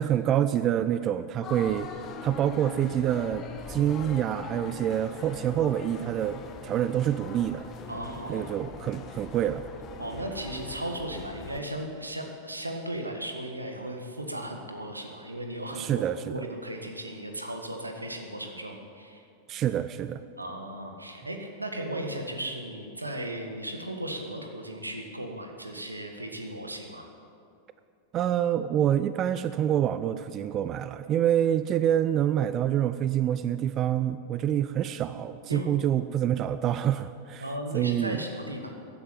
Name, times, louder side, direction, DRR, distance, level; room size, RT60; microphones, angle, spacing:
voice 1, 0.0-1.9 2.2-7.7 8.3-9.7 15.7-16.4 19.5-20.2 28.1-37.5 37.7-38.2, right 10 dB, 30° right, 13 dB, 0.5 m, -27 dB
sound 1, 1.4-11.6, left 5 dB, 30° left, 1.4 m, -41 dB
voice 2, 7.9-8.5 10.0-19.2 20.4-27.1 35.5-35.7 37.4-38.7, right 1 dB, 85° right, 4 dB, 1.7 m, -36 dB
15.0 x 10.0 x 8.8 m, 2.5 s
figure-of-eight pair, 90°, 0 cm